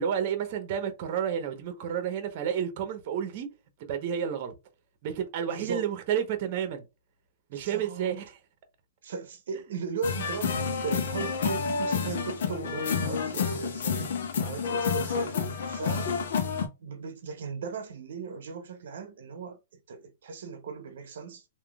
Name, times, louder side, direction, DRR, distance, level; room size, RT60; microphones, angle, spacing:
voice 1, 0.0-3.5 3.8-4.5 5.0-6.8 7.5-8.3, right 8 dB, 40° right, 0.9 m, -30 dB
voice 2, 5.5-5.9 7.5-8.2 9.0-16.2 16.8-19.6 19.9-21.5, right 5 dB, 75° right, 0.7 m, -37 dB
sound 1, 10.0-16.7, left 5 dB, 70° left, 0.9 m, -29 dB
3.6 x 2.7 x 2.3 m
hypercardioid pair, 155°, 0 cm